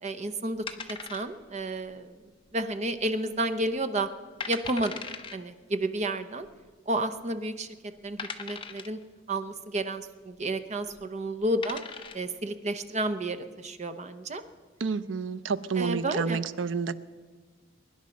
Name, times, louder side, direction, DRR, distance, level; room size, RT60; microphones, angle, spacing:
voice 1, 0.0-2.2 2.5-4.1 4.5-4.9 5.3-6.5 6.9-7.8 8.0-9.0 9.3-11.8 12.1-14.4 15.8-16.4, right 1 dB, 40° right, 10 dB, 0.8 m, -31 dB
sound 1, 0.7-1.6 1.9-2.0 2.6-3.0 3.4-3.5 4.0-4.1 4.4-5.4 6.5-6.6 7.2-7.3 8.2-9.0 10.8-11.0 11.4-12.3, left 5 dB, 25° left, 0.8 m, -39 dB
voice 2, 14.8-16.9, right 5 dB, 90° right, 14 dB, 0.6 m, -29 dB
23.0 x 10.5 x 5.2 m, 1.5 s
head